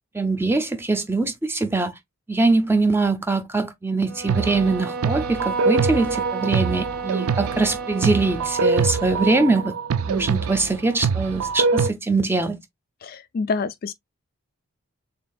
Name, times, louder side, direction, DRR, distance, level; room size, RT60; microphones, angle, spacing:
voice 1, 0.1-1.9 2.3-9.7 10.1-12.6, right 3 dB, 10° right, 0.6 m, -22 dB
sound 1, 4.0-8.8, right 4 dB, 45° right, 0.7 m, -32 dB
sound 2, 4.3-11.9, right 5 dB, 75° right, 0.4 m, -24 dB
voice 2, 13.0-13.9, left 4 dB, 40° left, 0.3 m, -27 dB
6.7 x 2.8 x 2.4 m
head